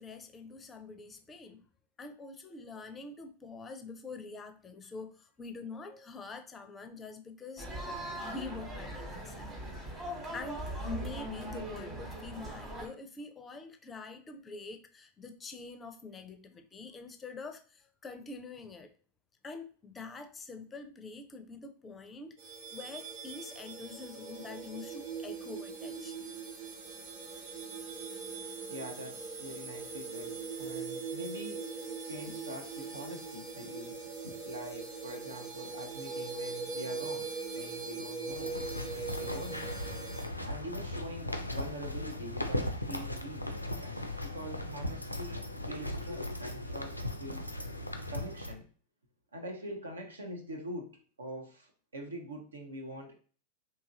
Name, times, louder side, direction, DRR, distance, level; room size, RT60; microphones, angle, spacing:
voice 1, 0.0-1.7 2.0-7.7 8.2-9.6 10.0-18.9 19.4-26.3, left 3 dB, 20° left, 0.4 m, -45 dB
sound 1, 7.6-12.9, right 1 dB, 25° right, 1.1 m, -40 dB
sound 2, 22.4-40.3, right 4 dB, 45° right, 1.0 m, -41 dB
voice 2, 28.7-31.7 32.0-34.0 34.2-39.7 40.4-47.5 48.1-48.6 49.3-53.1, right 1 dB, 75° right, 0.6 m, -44 dB
sound 3, 38.3-48.5, left 1 dB, 90° left, 0.4 m, -38 dB
2.8 x 2.4 x 2.8 m
figure-of-eight pair, 90°, 0 cm